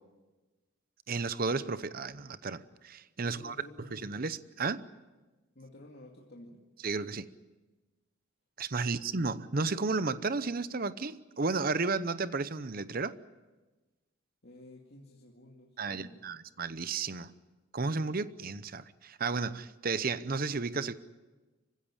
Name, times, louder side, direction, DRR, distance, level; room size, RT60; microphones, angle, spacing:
voice 1, 1.1-3.6 3.9-4.8 6.8-7.3 8.6-13.2 15.8-17.3 17.7-21.0, right 4 dB, 45° right, 14 dB, 0.8 m, -33 dB
voice 2, 3.3-4.3 5.5-6.7 8.8-9.0 14.4-16.2, left 1 dB, 55° left, -1 dB, 2.4 m, -52 dB
26.0 x 16.0 x 10.0 m, 1.2 s
head